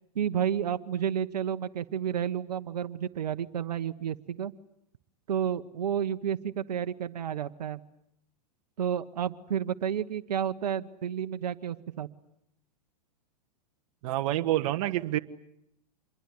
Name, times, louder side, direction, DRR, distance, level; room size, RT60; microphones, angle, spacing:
voice 1, 0.1-4.5 5.3-7.8 8.8-12.1, right 9 dB, 75° right, 9 dB, 1.3 m, -31 dB
voice 2, 14.0-15.2, right 15 dB, 55° right, 7 dB, 1.4 m, -27 dB
26.5 x 22.0 x 9.5 m, 0.77 s
hypercardioid pair, 115°, 21 cm